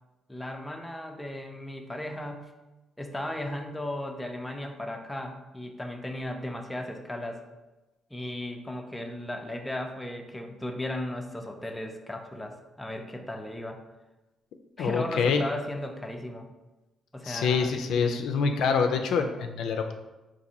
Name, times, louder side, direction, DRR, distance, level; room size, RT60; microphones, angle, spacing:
voice 1, 0.3-2.5 3.0-7.4 8.1-13.8 14.8-16.5 17.1-17.7 18.0-18.2, left 1 dB, 10° left, 3 dB, 0.4 m, -36 dB
voice 2, 14.8-15.4 17.2-19.9, left 5 dB, 80° left, 5 dB, 0.3 m, -26 dB
3.9 x 2.5 x 2.7 m, 1.1 s
cardioid pair, 90°, 0 cm